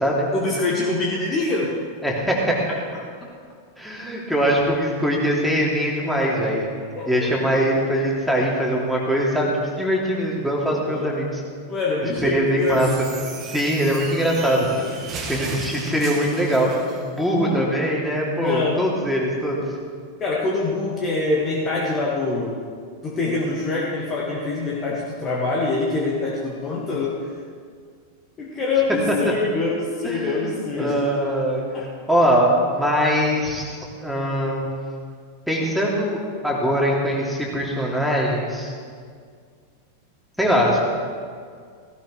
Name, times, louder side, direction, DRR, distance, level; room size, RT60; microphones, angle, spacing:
voice 1, 0.3-1.7 7.0-7.1 7.5-7.7 10.9-11.1 11.7-12.8 17.4-17.7 18.4-18.8 20.2-22.6 23.0-27.2 28.4-31.0 31.7-31.9, left 3 dB, 25° left, -3 dB, 1.9 m, -24 dB
voice 2, 2.0-2.6 3.8-6.7 7.1-9.5 9.8-11.4 12.2-13.1 13.4-14.7 15.2-16.7 17.0-19.6 30.0-31.6 32.1-34.7 35.5-38.7 40.4-40.8, equal, ahead, -3 dB, 2.9 m, -22 dB
sound 1, 12.6-17.0, right 4 dB, 30° right, 1.7 m, -36 dB
16.5 x 16.5 x 3.3 m, 2.1 s
figure-of-eight pair, 90°, 0 cm